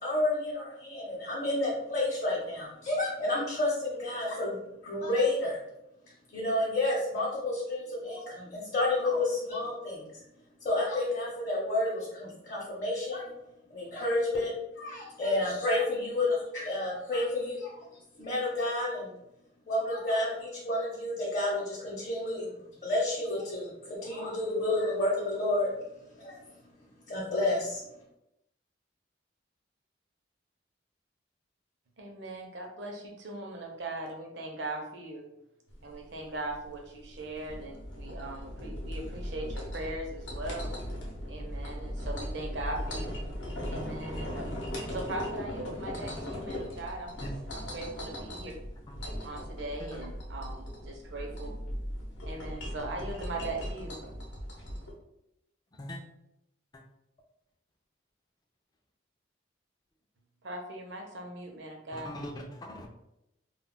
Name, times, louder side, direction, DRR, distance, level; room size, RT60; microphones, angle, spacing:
voice 1, 0.0-5.6 6.3-10.2 10.6-13.3 13.7-17.8 18.2-19.1 19.7-22.5 22.8-25.7 26.2-26.4 27.1-27.8, left 2 dB, 45° left, 0.7 m, -30 dB
voice 2, 32.0-35.3 35.8-40.7 41.3-43.2 43.7-44.6 44.9-47.3 47.5-48.5 49.2-51.5 52.3-54.0 60.4-62.1, right 2 dB, 70° right, 0.6 m, -39 dB
sound 1, 35.7-54.9, equal, 80° left, 0.7 m, -38 dB
voice 3, 61.9-62.9, left 1 dB, 20° left, 0.3 m, -40 dB
2.3 x 2.1 x 3.7 m
head